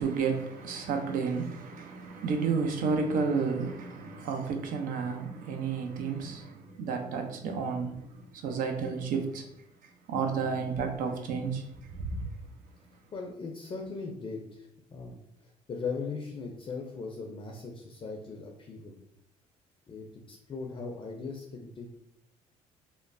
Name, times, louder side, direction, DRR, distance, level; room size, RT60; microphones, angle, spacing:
voice 1, 0.0-9.5 10.1-12.3, right 5 dB, 65° right, 0.5 m, -31 dB
voice 2, 13.1-19.0 19.9-22.0, left 4 dB, 35° left, 0.5 m, -39 dB
3.0 x 2.1 x 2.5 m
supercardioid pair, 75°, 15 cm